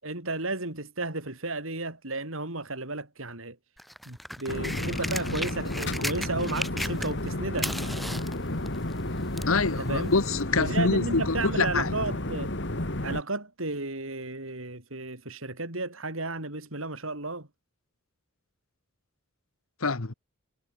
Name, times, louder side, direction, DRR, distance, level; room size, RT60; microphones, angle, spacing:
voice 1, 0.0-3.6 4.1-7.7 9.8-10.1 10.6-12.5 13.0-17.5, right 2 dB, 75° right, 5.3 m, -33 dB
sound 1, 3.8-7.3 7.6-9.6 10.4-10.5, equal, ahead, 5.9 m, -36 dB
sound 2, 4.5-13.2, left 1 dB, 55° left, 2.5 m, -32 dB
voice 2, 9.5-11.9 19.8-20.1, left 3 dB, 80° left, 1.4 m, -26 dB
head